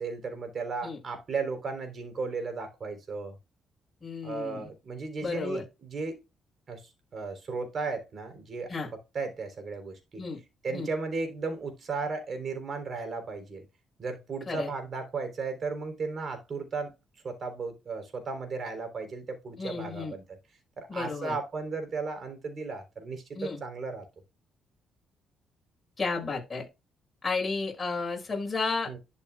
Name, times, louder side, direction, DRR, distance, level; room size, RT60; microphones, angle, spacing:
voice 1, 0.0-3.4 4.2-6.2 6.7-10.2 10.6-13.6 14.0-16.9 17.2-20.4 20.8-24.0 28.9-29.0, right 4 dB, 45° right, 3.6 m, -35 dB
voice 2, 4.0-4.7 5.2-5.6 8.7-8.9 10.2-10.4 10.7-10.9 14.5-14.7 19.6-20.1 20.9-21.4 23.3-23.6 26.0-26.7 27.2-28.9, left 4 dB, 25° left, 5.9 m, -32 dB
11.5 x 6.6 x 2.4 m
cardioid pair, 90°, 0 cm